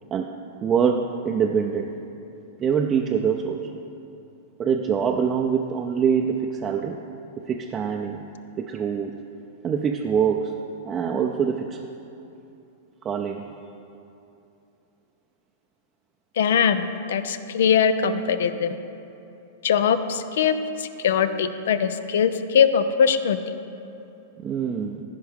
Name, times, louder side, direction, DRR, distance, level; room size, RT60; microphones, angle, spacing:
voice 1, 0.6-1.9 2.6-3.6 4.6-7.0 7.5-8.2 8.6-9.1 9.6-10.5 10.9-11.8 13.0-13.4 24.4-25.0, right 7 dB, 25° right, 1 dB, 0.5 m, -24 dB
voice 2, 16.4-18.7 19.6-23.4, left 7 dB, 70° left, 12 dB, 0.5 m, -21 dB
15.0 x 5.3 x 3.5 m, 2.8 s
hypercardioid pair, 105°, 0 cm